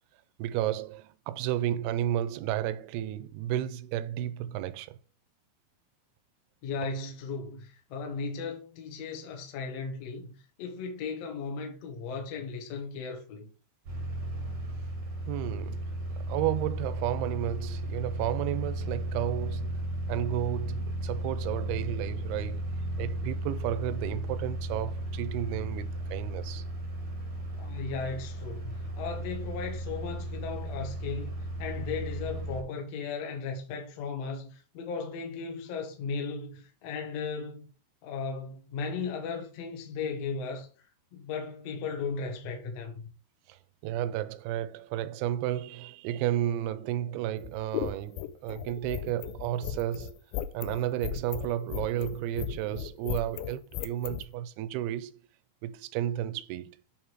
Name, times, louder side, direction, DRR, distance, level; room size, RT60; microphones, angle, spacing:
voice 1, 0.4-5.0 15.3-19.8 20.1-22.7 23.0-26.6 43.5-50.2 50.5-55.1 55.6-56.8, right 12 dB, 80° right, 2.4 m, -32 dB
voice 2, 6.6-10.3 10.6-13.5 27.6-31.3 31.6-37.7 38.0-40.7 41.1-43.1, left 5 dB, 60° left, 1.8 m, -36 dB
sound 1, 13.8-32.6, right 1 dB, 65° right, 1.1 m, -35 dB
sound 2, 47.4-54.2, left 11 dB, 85° left, 2.3 m, -36 dB
8.9 x 3.6 x 4.6 m
omnidirectional pair, 4.8 m